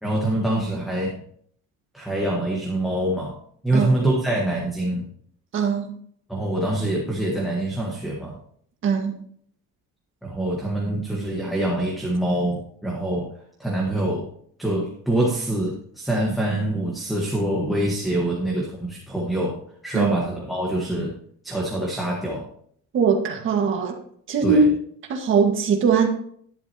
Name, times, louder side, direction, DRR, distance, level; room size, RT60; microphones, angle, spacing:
voice 1, 0.0-1.2 1.9-3.4 3.6-5.1 6.3-8.4 10.2-13.3 13.6-14.3 14.6-19.6 19.8-21.2 21.4-22.4 24.4-24.7, right 1 dB, ahead, -3 dB, 1.4 m, -25 dB
voice 2, 5.5-5.9 8.8-9.2 19.9-20.1 22.9-24.0 24.3-24.6 25.1-26.1, right 6 dB, 40° right, 3 dB, 1.7 m, -20 dB
11.0 x 10.5 x 2.9 m, 0.63 s
cardioid pair, 175°, 32 cm